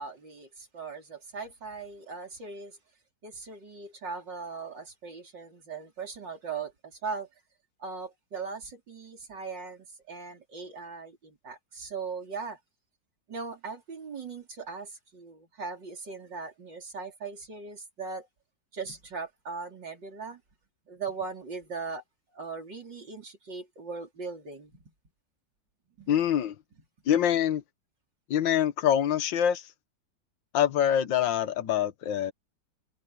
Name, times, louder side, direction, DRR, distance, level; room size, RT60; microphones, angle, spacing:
voice 1, 0.0-2.8 3.2-7.3 7.8-12.6 13.3-18.3 18.7-20.4 20.9-22.0 22.3-24.9 26.0-26.3, right 4 dB, 75° right, 4.8 m, -39 dB
voice 2, 26.1-26.5 27.1-27.6 28.3-29.7 30.5-32.3, left 10 dB, 85° left, 1.7 m, -25 dB
omnidirectional pair, 1.9 m